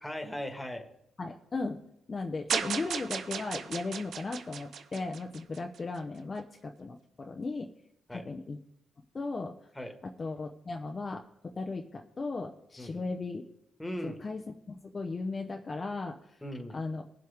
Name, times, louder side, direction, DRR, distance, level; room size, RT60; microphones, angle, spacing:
voice 1, 0.0-0.9 8.1-8.2 9.8-9.9 12.8-13.1 13.8-14.2 16.4-16.8, equal, 10° left, 5 dB, 1.8 m, -38 dB
voice 2, 1.2-1.8 2.1-7.7 8.1-8.6 9.1-9.5 10.0-13.5 14.0-14.4 14.7-16.4 16.7-17.0, left 3 dB, 35° left, 3 dB, 0.8 m, -36 dB
sound 1, 2.5-5.8, right 6 dB, 70° right, 0.8 m, -35 dB
19.5 x 7.7 x 3.6 m, 0.80 s
cardioid pair, 80°, 0 cm